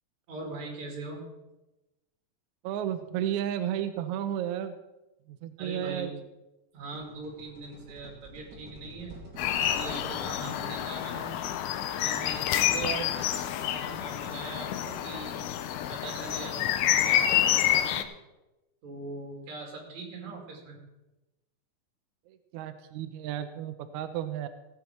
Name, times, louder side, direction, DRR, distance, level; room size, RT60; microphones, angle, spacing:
voice 1, 0.3-1.2 5.6-6.2 6.7-9.2 9.6-11.4 11.9-12.8 13.1-13.4 13.7-15.5 15.8-18.1 18.8-20.8, right 3 dB, 55° right, 0 dB, 3.6 m, -41 dB
voice 2, 2.6-4.8 5.3-6.1 12.7-13.1 22.3-24.5, right 11 dB, 80° right, 9 dB, 1.8 m, -33 dB
sound 1, 6.8-11.6, right 1 dB, 30° right, 3.3 m, -49 dB
sound 2, 9.4-18.0, left 11 dB, 75° left, 1.8 m, -28 dB
16.5 x 8.4 x 4.5 m, 1.0 s
omnidirectional pair, 3.9 m